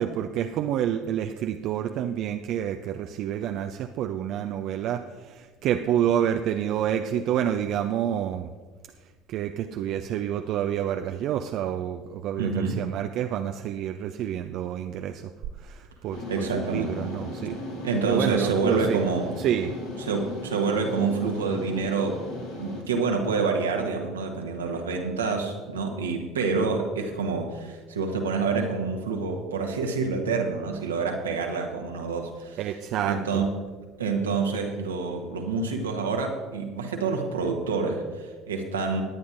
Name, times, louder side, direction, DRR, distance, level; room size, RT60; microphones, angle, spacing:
voice 1, 0.0-8.5 9.3-15.2 15.6-17.6 18.1-19.0 19.4-19.7 32.6-33.4, right 10 dB, 55° right, 7 dB, 0.5 m, -28 dB
voice 2, 12.4-12.9 16.3-17.0 17.8-19.3 20.0-22.2 22.6-32.6 33.0-33.5 34.0-39.0, right 4 dB, 85° right, 2 dB, 1.3 m, -27 dB
sound 1, 16.1-22.8, left 2 dB, 80° left, 2.3 m, -37 dB
18.5 x 9.5 x 2.6 m, 1.4 s
hypercardioid pair, 60°, 0 cm